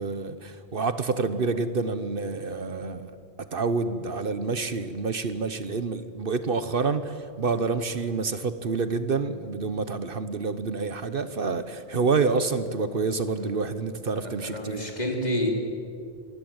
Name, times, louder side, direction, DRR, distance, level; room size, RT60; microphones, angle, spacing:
voice 1, 0.0-3.1 3.5-14.8, right 4 dB, 60° right, 12 dB, 1.2 m, -28 dB
voice 2, 14.1-15.5, left 1 dB, 45° left, 1 dB, 4.0 m, -30 dB
26.0 x 20.0 x 8.9 m, 2.4 s
omnidirectional pair, 1.0 m